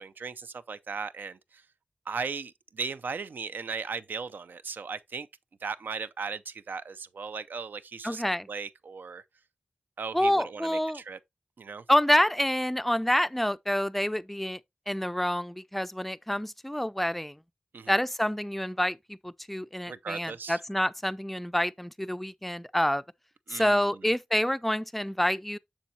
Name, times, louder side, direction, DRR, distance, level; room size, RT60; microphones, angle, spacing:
voice 1, 0.0-1.6 2.1-5.3 5.6-9.2 10.0-11.2 11.6-11.8 17.7-18.0 19.9-20.6 23.5-24.1, right 5 dB, 85° right, 0.5 m, -37 dB
voice 2, 8.0-8.5 10.1-11.0 11.9-14.6 14.9-17.4 17.9-23.0 23.5-25.6, equal, 5° left, 0.3 m, -27 dB
7.1 x 7.0 x 2.7 m
wide cardioid pair, 105°, 3 cm